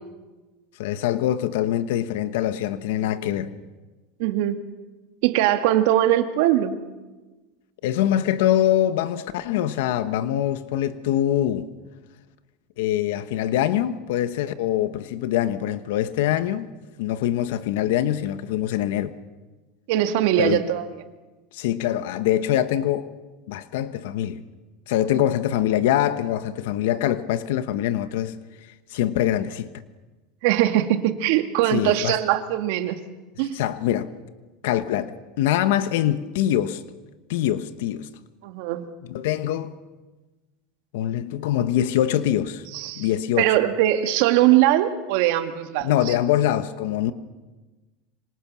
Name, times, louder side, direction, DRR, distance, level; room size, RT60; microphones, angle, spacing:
voice 1, 0.8-3.6 7.8-11.7 12.8-16.7 17.0-19.1 20.4-20.7 21.5-23.1 23.5-24.4 24.9-28.3 28.9-29.7 31.6-32.2 33.5-34.1 34.6-36.8 37.3-38.1 39.1-39.7 40.9-42.6 43.0-43.5 45.8-47.1, left 12 dB, 80° left, 1.1 m, -24 dB
voice 2, 4.2-4.6 5.2-6.8 19.9-20.8 30.4-33.0 33.4-33.6 38.4-38.8 42.7-43.1 43.4-45.9, right 13 dB, 70° right, 1.9 m, -21 dB
26.0 x 25.5 x 6.3 m
supercardioid pair, 145°, 0 cm